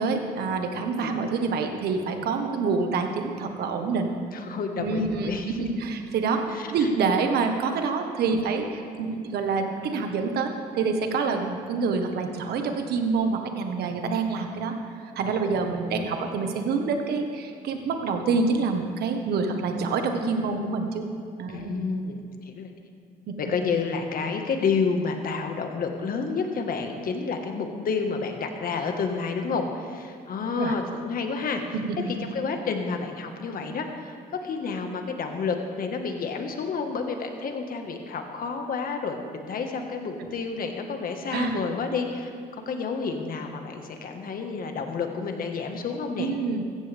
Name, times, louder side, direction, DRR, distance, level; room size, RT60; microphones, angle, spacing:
voice 1, 0.0-4.1 4.8-6.4 6.7-14.7 15.1-21.0 21.4-21.8 23.3-23.4 30.5-30.7 31.7-31.9 41.3-41.6 46.2-46.6, right 4 dB, 75° right, 5 dB, 1.5 m, -27 dB
voice 2, 4.3-5.6 6.5-6.9 16.0-16.1 21.5-22.2 22.4-22.7 23.4-31.8 32.2-34.1 34.4-46.3, left 5 dB, 60° left, 4 dB, 1.7 m, -30 dB
15.5 x 14.5 x 3.6 m, 2.4 s
cardioid pair, 80°, 16 cm